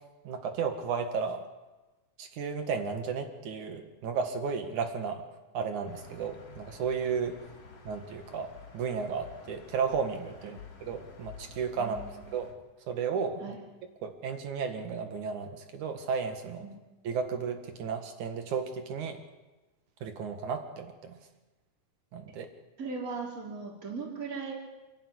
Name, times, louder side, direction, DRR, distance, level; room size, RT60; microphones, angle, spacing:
voice 1, 0.2-1.4 2.2-5.2 5.5-7.4 7.8-12.1 12.3-12.5 12.9-13.4 14.0-16.7 17.0-19.2 20.0-21.1 22.1-22.5, right 6 dB, 80° right, 6 dB, 3.3 m, -33 dB
sound 1, 5.9-12.5, left 4 dB, 55° left, 3.7 m, -50 dB
voice 2, 11.8-12.3 13.4-13.6 16.6-16.8 22.8-24.5, right 4 dB, 30° right, -1 dB, 4.0 m, -38 dB
28.5 x 11.5 x 10.0 m, 1.2 s
omnidirectional pair, 3.4 m